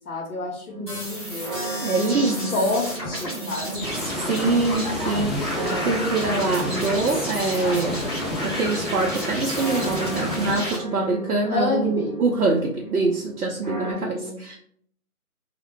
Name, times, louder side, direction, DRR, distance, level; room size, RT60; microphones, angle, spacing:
voice 1, 0.1-1.5 2.1-3.9 11.5-12.2 13.9-14.4, left 3 dB, 80° left, 0 dB, 0.7 m, -28 dB
sound 1, 0.7-13.9, right 3 dB, 35° right, 0.7 m, -36 dB
sound 2, 0.9-10.8, left 1 dB, 20° left, 0.8 m, -32 dB
voice 2, 1.8-2.7 3.3-3.9 4.1-8.0 8.4-14.6, right 3 dB, 85° right, -1 dB, 0.6 m, -25 dB
sound 3, 3.8-10.5, left 1 dB, ahead, 0.3 m, -31 dB
2.1 x 2.0 x 2.9 m, 0.63 s
figure-of-eight pair, 155°, 44 cm